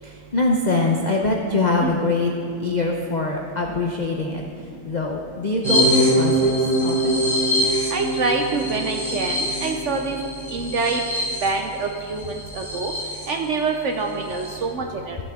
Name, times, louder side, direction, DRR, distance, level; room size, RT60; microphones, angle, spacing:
voice 1, 0.0-2.3 2.6-7.2, left 2 dB, 75° left, 0 dB, 0.4 m, -24 dB
sound 1, 5.6-13.3 13.7-13.8 14.1-14.6, equal, 25° right, 3.0 m, -23 dB
voice 2, 7.6-10.2 10.5-11.0 11.4-12.9 13.3-15.2, right 4 dB, 65° right, 3 dB, 0.7 m, -26 dB
14.0 x 7.4 x 3.6 m, 2.5 s
omnidirectional pair, 1.8 m